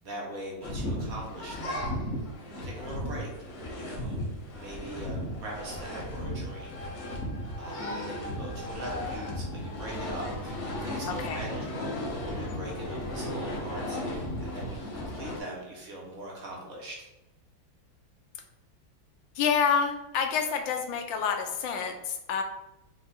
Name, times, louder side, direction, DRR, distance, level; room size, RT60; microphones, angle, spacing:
voice 1, 0.0-1.9 2.6-3.3 3.8-4.2 4.5-6.7 7.6-16.9, right 1 dB, 50° right, -2 dB, 1.4 m, -41 dB
sound 1, 0.6-15.4, left 1 dB, 55° left, 0.8 m, -35 dB
voice 2, 11.1-11.5 19.3-22.4, left 6 dB, 80° left, 5 dB, 1.3 m, -28 dB
4.7 x 2.6 x 4.0 m, 0.93 s
omnidirectional pair, 2.1 m